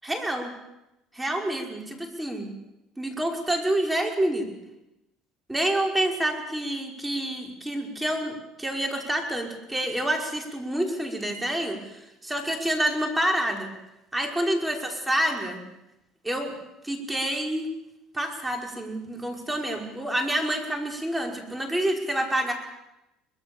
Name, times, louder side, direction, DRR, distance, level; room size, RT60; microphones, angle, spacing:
voice 1, 0.0-0.5 1.1-2.5 3.0-4.5 5.5-13.7 14.1-15.6 16.2-16.5 16.8-17.7 18.1-22.5, right 1 dB, 10° right, 3 dB, 5.3 m, -28 dB
23.5 x 21.0 x 7.2 m, 0.91 s
supercardioid pair, 90°, 0 cm